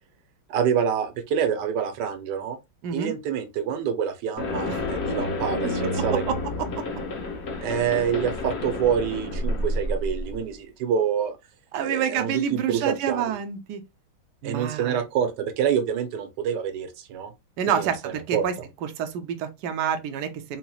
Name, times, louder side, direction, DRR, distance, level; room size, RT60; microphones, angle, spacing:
voice 1, 0.5-2.6 2.9-6.3 7.6-11.4 11.8-13.2 14.4-17.3 17.7-18.4, right 8 dB, 70° right, 1.1 m, -27 dB
sound 1, 4.4-10.4, left 2 dB, 85° left, 0.5 m, -29 dB
voice 2, 11.7-13.8 14.4-15.0 17.6-18.5 18.8-20.6, right 8 dB, 85° right, 0.9 m, -28 dB
3.9 x 2.9 x 2.3 m
omnidirectional pair, 2.4 m